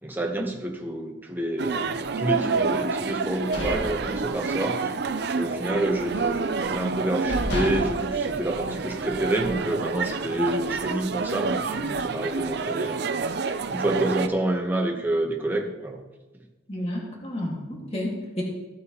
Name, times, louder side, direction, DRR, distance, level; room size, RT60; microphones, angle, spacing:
voice 1, 0.0-4.9 5.3-13.0 13.5-16.0, right 1 dB, 10° right, 1 dB, 1.1 m, -28 dB
sound 1, 1.6-14.3, right 4 dB, 55° right, 0.5 m, -28 dB
sound 2, 3.2-4.8 5.1-5.4 5.7-6.5 6.9-7.0 7.3-9.1, left 1 dB, 65° left, 1.7 m, -33 dB
voice 2, 16.7-18.4, left 1 dB, 30° left, -3 dB, 2.0 m, -31 dB
15.5 x 8.4 x 3.0 m, 1.1 s
head